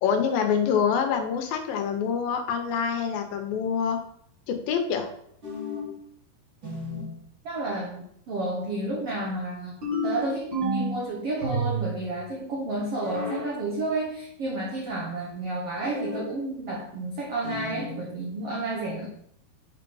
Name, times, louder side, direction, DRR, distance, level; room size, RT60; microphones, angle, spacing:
voice 1, 0.0-4.0 4.5-5.1, left 7 dB, 75° left, 5 dB, 2.5 m, -26 dB
sound 1, 5.4-6.0 6.6-7.1 9.8-11.0 11.4-12.1 13.0-13.5 15.8-16.3 17.4-17.9, equal, 35° right, 2.7 m, -30 dB
voice 2, 7.4-9.7 10.0-19.1, right 2 dB, 85° right, -1 dB, 1.3 m, -31 dB
6.1 x 5.6 x 5.5 m, 0.70 s
omnidirectional pair, 4.5 m